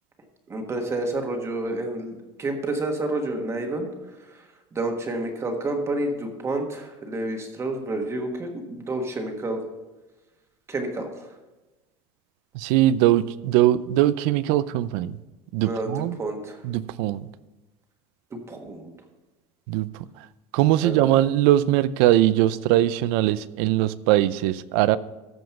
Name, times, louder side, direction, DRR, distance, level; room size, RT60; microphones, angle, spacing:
voice 1, 0.5-3.9 4.2-4.5 4.7-9.6 10.7-11.3 15.6-16.6 18.3-18.9 20.8-21.2, right 2 dB, 20° right, 4 dB, 1.4 m, -29 dB
voice 2, 12.5-15.2 15.5-16.2 16.6-17.3 19.7-19.9 20.5-25.0, right 14 dB, 75° right, 17 dB, 0.5 m, -21 dB
14.0 x 5.2 x 5.9 m, 1.1 s
cardioid pair, 155°, 14 cm